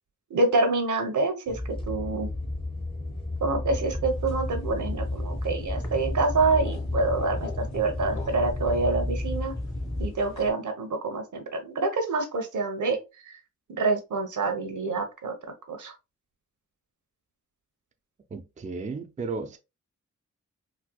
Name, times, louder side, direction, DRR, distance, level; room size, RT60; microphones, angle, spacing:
voice 1, 0.3-2.3 3.4-9.6 10.0-13.0 13.3-13.4 13.7-15.3 15.7-15.9, right 3 dB, 80° right, 0.9 m, -27 dB
sound 1, 1.5-10.1, left 1 dB, 20° left, 0.8 m, -32 dB
sound 2, 4.0-10.5, left 3 dB, 70° left, 1.3 m, -42 dB
voice 2, 18.3-19.6, right 4 dB, 25° right, 0.4 m, -34 dB
4.2 x 2.2 x 2.2 m
wide cardioid pair, 130°, 30 cm